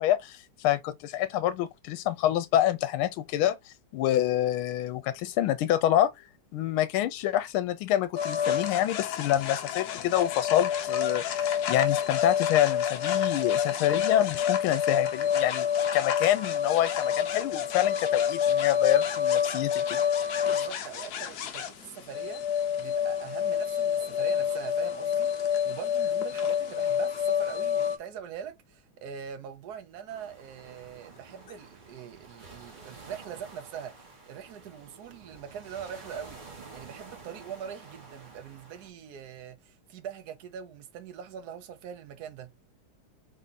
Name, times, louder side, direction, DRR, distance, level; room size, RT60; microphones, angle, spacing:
voice 1, 0.0-6.1 6.5-15.7 15.9-20.0, left 12 dB, 85° left, 1.4 m, -27 dB
sound 1, 8.2-28.0, left 8 dB, 65° left, 1.0 m, -28 dB
voice 2, 20.5-22.4 22.8-36.4 36.7-42.5, right 8 dB, 60° right, 1.2 m, -42 dB
sound 2, 30.1-38.9, right 4 dB, 30° right, 1.1 m, -50 dB
3.9 x 2.7 x 3.9 m
omnidirectional pair, 2.3 m